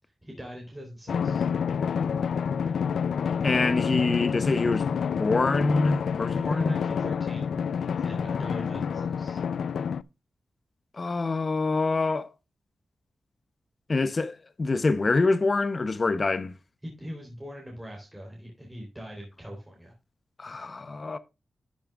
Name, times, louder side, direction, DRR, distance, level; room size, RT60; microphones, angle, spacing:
voice 1, 0.2-1.5 6.4-7.5 8.0-9.4 16.8-19.9, equal, 10° right, 3.6 m, -41 dB
Drum, 1.1-10.0, left 7 dB, 85° left, 0.4 m, -28 dB
voice 2, 3.4-6.8 10.9-12.3 13.9-16.5 20.4-21.2, left 3 dB, 35° left, 0.7 m, -25 dB
11.5 x 8.8 x 2.3 m
wide cardioid pair, 140°, 0 cm